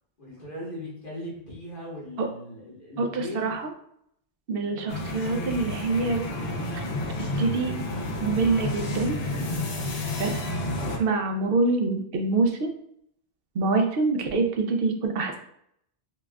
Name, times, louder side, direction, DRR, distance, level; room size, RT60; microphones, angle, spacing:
voice 1, 0.2-3.6 4.7-4.9, left 1 dB, 55° left, -5 dB, 1.6 m, -39 dB
voice 2, 3.0-3.6 4.5-6.2 6.7-6.8 7.2-7.7 8.2-9.1 10.2-10.3 11.0-12.7 13.5-15.4, right 3 dB, 65° right, 4 dB, 0.8 m, -25 dB
sound 1, 4.9-11.0, left 2 dB, 75° left, 0.9 m, -30 dB
5.1 x 2.3 x 2.2 m, 0.70 s
omnidirectional pair, 1.1 m